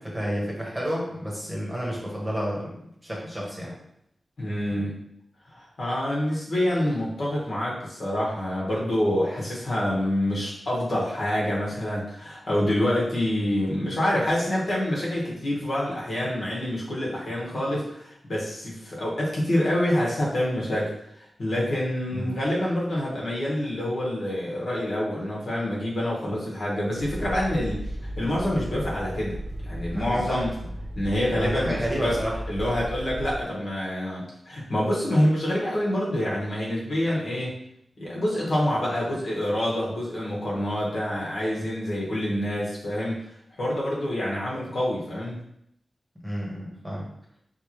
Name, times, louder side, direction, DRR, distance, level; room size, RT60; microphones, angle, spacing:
voice 1, 0.0-3.7 22.1-22.3 29.9-30.4 31.3-32.4 46.2-47.1, equal, 10° right, -4 dB, 1.2 m, -30 dB
voice 2, 4.4-4.9 5.5-29.4 29.7-30.5 30.9-32.2 32.5-37.6 38.0-43.2 43.6-45.4, left 1 dB, 60° left, -5 dB, 1.4 m, -27 dB
sound 1, 27.0-33.4, equal, 60° right, 1.0 m, -35 dB
4.3 x 3.4 x 3.1 m, 0.75 s
wide cardioid pair, 130°, 0 cm